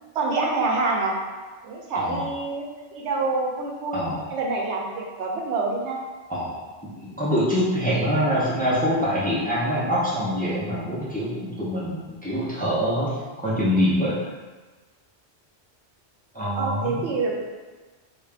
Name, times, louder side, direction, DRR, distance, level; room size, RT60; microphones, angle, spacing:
voice 1, 0.1-1.2 1.6-2.6 2.9-4.0 4.3-6.0 16.6-17.4, right 3 dB, 85° right, -1 dB, 0.9 m, -26 dB
voice 2, 1.9-2.2 3.9-4.2 6.3-6.6 7.0-13.1 13.4-14.1 16.3-17.1, equal, 10° left, -9 dB, 0.7 m, -24 dB
3.7 x 2.4 x 3.4 m, 1.3 s
omnidirectional pair, 1.1 m